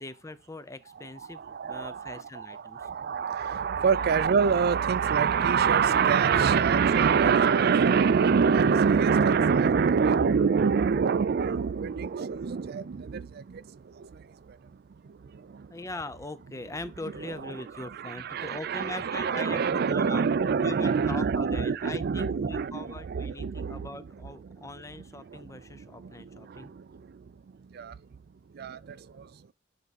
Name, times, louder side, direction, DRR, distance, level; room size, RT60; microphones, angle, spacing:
voice 1, 0.0-2.9 15.7-20.2 20.6-26.7, left 2 dB, 15° left, 0.6 m, -41 dB
voice 2, 1.2-15.8 17.2-24.0 24.4-24.7 25.2-28.2 28.5-29.5, right 6 dB, 55° right, 0.4 m, -26 dB
10.0 x 3.6 x 4.1 m
head